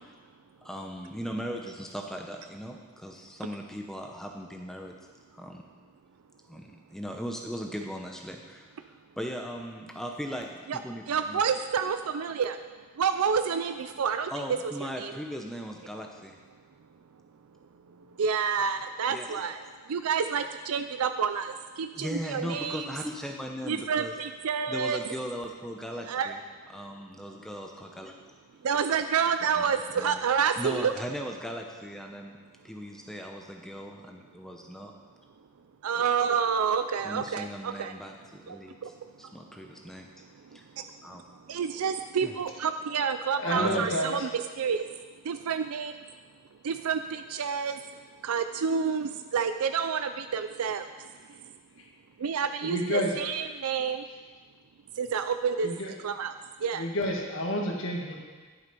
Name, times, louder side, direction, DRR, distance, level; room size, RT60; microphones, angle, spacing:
voice 1, 0.6-4.9 5.3-5.6 6.5-8.7 9.2-11.4 14.3-16.4 18.6-18.7 19.1-19.3 22.0-24.1 24.7-26.4 26.7-28.2 29.6-29.7 30.0-30.3 30.6-32.3 32.6-34.9 37.0-40.1 40.5-40.6 41.0-41.2 42.2-42.3 43.5-44.0, equal, ahead, 2 dB, 0.7 m, -38 dB
voice 2, 11.1-12.6 13.0-14.6 15.0-15.1 18.2-19.6 19.9-22.9 23.7-25.0 26.1-26.4 28.6-30.9 35.8-37.9 38.5-38.6 38.8-38.9 41.5-44.9 45.3-45.9 46.6-47.8 48.2-50.9 52.2-54.0 55.0-55.7 56.0-56.3 56.6-56.8, right 6 dB, 90° right, 9 dB, 0.5 m, -28 dB
voice 3, 43.4-44.1 52.6-53.1 55.6-55.9 56.8-58.1, left 1 dB, 65° left, 0 dB, 1.8 m, -29 dB
11.5 x 7.8 x 5.4 m, 1.4 s
head